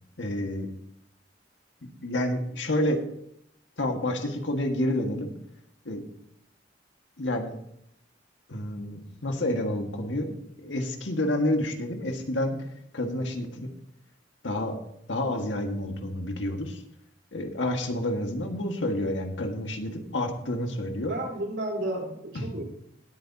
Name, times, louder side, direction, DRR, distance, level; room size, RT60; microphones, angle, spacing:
voice 1, 0.2-0.7 2.0-3.0 3.8-5.3 5.9-6.0 7.2-7.6 8.5-12.6 12.9-13.7 14.4-14.8 15.1-16.8 17.3-21.1 22.4-22.5, left 1 dB, 85° left, 4 dB, 1.7 m, -29 dB
voice 2, 21.1-22.6, right 1 dB, 70° right, 0 dB, 3.8 m, -32 dB
18.0 x 8.6 x 2.8 m, 0.73 s
head